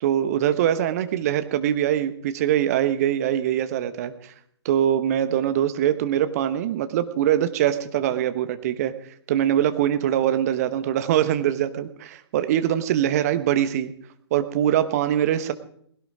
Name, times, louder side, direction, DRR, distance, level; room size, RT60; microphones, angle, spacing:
voice 1, 0.0-4.3 4.6-8.9 9.3-13.9 14.3-15.5, right 11 dB, 35° right, 10 dB, 1.2 m, -23 dB
20.0 x 17.0 x 3.7 m, 0.65 s
figure-of-eight pair, 130°, 15 cm